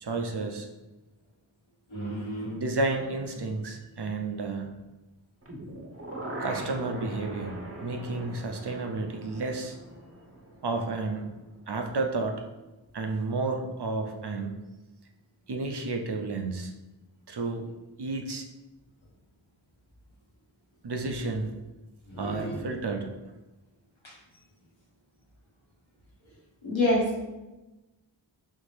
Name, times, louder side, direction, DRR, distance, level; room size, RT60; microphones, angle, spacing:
voice 1, 0.0-0.7 2.4-4.7 6.4-9.8 10.6-11.3 11.7-12.4 12.9-14.5 15.5-16.7 17.3-17.7 18.0-18.5 20.8-21.5 22.2-23.1, right 3 dB, 60° right, 3 dB, 0.7 m, -31 dB
voice 2, 1.9-2.6 22.1-22.7 24.0-24.1 26.6-27.3, left 1 dB, 70° left, -4 dB, 1.5 m, -29 dB
sound 1, 5.4-11.4 11.8-11.9, right 1 dB, 30° right, 0.9 m, -41 dB
4.4 x 3.5 x 3.3 m, 1.1 s
wide cardioid pair, 55°, 47 cm